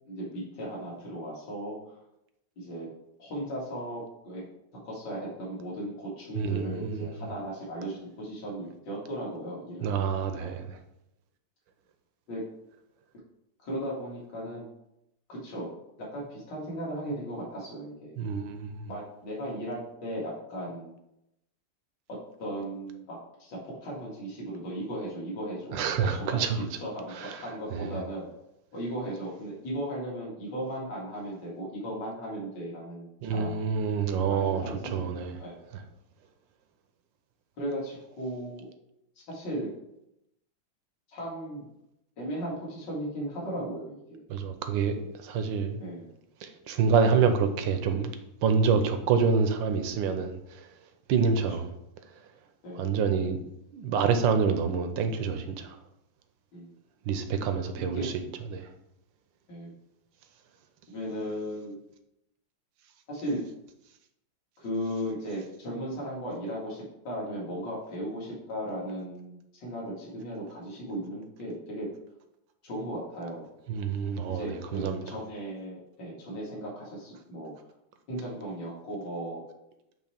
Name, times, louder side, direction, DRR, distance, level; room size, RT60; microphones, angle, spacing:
voice 1, 0.1-2.0 2.6-2.9 3.2-4.4 4.8-10.0 10.4-10.5 12.3-12.4 13.6-14.7 15.3-15.7 16.0-18.1 18.9-20.9 22.1-28.3 28.7-33.7 34.2-35.1 35.4-35.6 37.6-38.7 39.2-39.7 41.1-41.7 42.2-44.2 45.8-46.1 52.6-52.9 56.5-56.7 57.7-58.1 59.5-59.7 60.9-61.7 63.1-63.4 64.6-71.9 72.6-73.5 74.3-77.5 78.1-79.4, right 1 dB, 55° left, -5 dB, 2.6 m, -36 dB
voice 2, 6.4-7.3 9.8-10.8 18.2-18.9 25.7-26.7 27.1-27.4 27.7-27.9 33.2-35.4 35.7-35.8 44.3-45.8 46.4-48.1 48.4-50.7 51.1-51.7 52.8-53.4 53.7-55.8 57.1-58.1 58.5-58.7 73.7-75.0, right 6 dB, 70° right, 7 dB, 1.3 m, -27 dB
8.3 x 3.1 x 4.4 m, 0.83 s
omnidirectional pair, 2.4 m